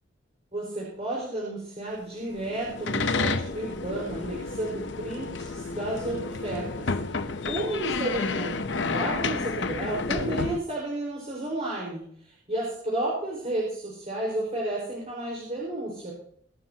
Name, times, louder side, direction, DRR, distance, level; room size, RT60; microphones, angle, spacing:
voice 1, 0.5-16.1, right 1 dB, 35° right, -4 dB, 5.0 m, -32 dB
sound 1, 2.3-10.6, left 4 dB, 65° left, 0.8 m, -30 dB
23.5 x 12.0 x 2.9 m, 0.65 s
head